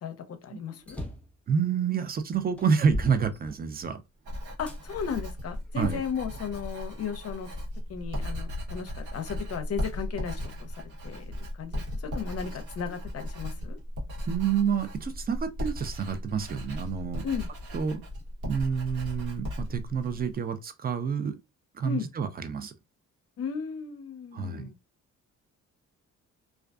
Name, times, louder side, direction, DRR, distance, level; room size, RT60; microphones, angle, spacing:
voice 1, 0.0-1.0 4.6-7.5 7.9-13.8 17.2-17.5 21.8-22.1 23.4-24.8, left 7 dB, 50° left, 0.6 m, -35 dB
sound 1, 0.9-1.4 2.0-2.1 2.6-4.0 4.7-4.8 5.5-6.6, left 1 dB, 5° left, 0.7 m, -38 dB
voice 2, 1.5-4.0 5.7-6.0 14.3-17.2 17.7-18.0 18.4-21.4 21.7-22.7 24.3-24.7, right 6 dB, 30° right, 0.4 m, -28 dB
Writing, 4.2-20.3, left 1 dB, 85° right, 1.1 m, -36 dB
2.4 x 2.3 x 2.3 m
cardioid pair, 90°, 30 cm